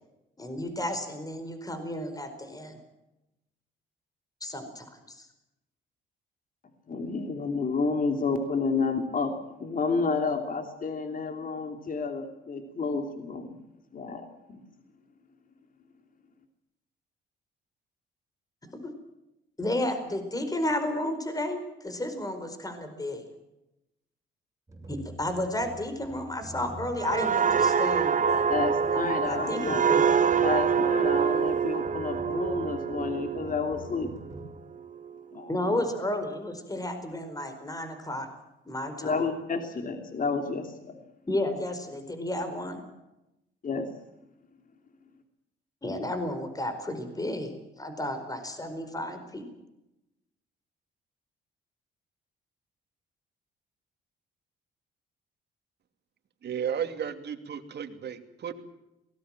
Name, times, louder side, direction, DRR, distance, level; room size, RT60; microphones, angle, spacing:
voice 1, 0.4-2.8 4.4-5.3 18.7-18.9 19.6-23.2 24.9-28.5 28.9-30.1 35.5-38.3 38.7-39.2 41.3-42.8 45.8-49.5, left 1 dB, 20° left, 8 dB, 4.6 m, -32 dB
voice 2, 6.9-13.6 13.9-14.6 28.5-29.8 30.4-34.1 35.3-35.6 39.0-41.0 43.6-43.9, left 4 dB, 45° left, 5 dB, 2.9 m, -30 dB
sound 1, 24.7-34.4, right 2 dB, 15° right, 7.3 m, -46 dB
sound 2, 27.0-34.4 34.8-35.1, right 6 dB, 40° right, 1.3 m, -26 dB
voice 3, 56.4-58.5, right 8 dB, 60° right, 7 dB, 2.7 m, -33 dB
23.0 x 19.0 x 7.6 m, 0.93 s
cardioid pair, 90°, 20 cm